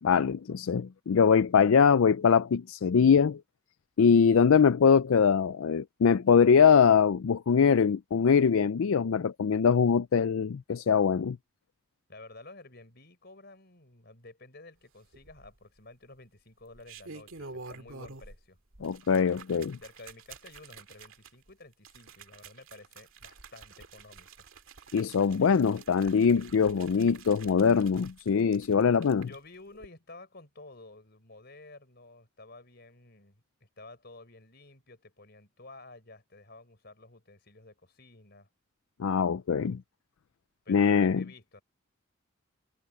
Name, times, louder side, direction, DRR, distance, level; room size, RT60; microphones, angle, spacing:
voice 1, 0.0-3.4 4.0-11.4 18.8-19.8 24.9-29.3 39.0-39.8 40.7-41.2, left 6 dB, 70° left, 0.4 m, -23 dB
voice 2, 12.1-18.6 19.8-24.5 29.2-38.5 40.6-41.6, left 2 dB, 45° left, 4.8 m, -52 dB
sound 1, 15.1-15.8 16.6-18.4 18.7-29.4 29.7-29.9, right 4 dB, 70° right, 2.1 m, -49 dB
head